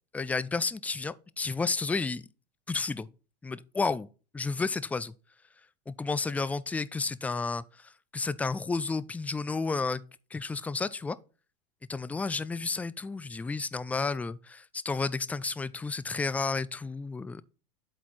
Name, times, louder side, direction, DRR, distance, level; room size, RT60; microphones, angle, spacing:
voice 1, 0.1-2.2 2.7-3.1 3.4-4.1 4.3-5.1 5.9-7.6 8.1-10.0 10.3-11.2 11.9-17.4, left 4 dB, 5° left, 0.3 m, -31 dB
8.0 x 4.2 x 4.7 m
hypercardioid pair, 110°, 21 cm